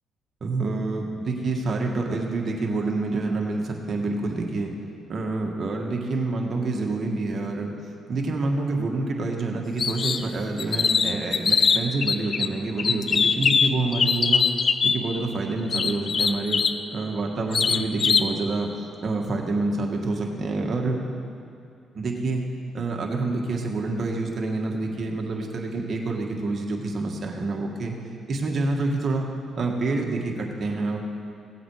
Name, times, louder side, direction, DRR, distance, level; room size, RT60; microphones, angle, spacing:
voice 1, 0.4-4.7 5.1-7.7 8.1-14.5 14.8-16.6 16.9-18.7 19.0-21.0 21.9-22.4 22.7-28.0 28.3-29.3 29.6-31.0, right 3 dB, 50° right, 1 dB, 1.9 m, -27 dB
sound 1, 9.8-10.2 10.6-12.5 12.8-15.0 15.7-16.8 17.5-18.3, left 5 dB, 45° left, 0.5 m, -22 dB
17.0 x 7.8 x 4.9 m, 2.6 s
cardioid pair, 90°, 0 cm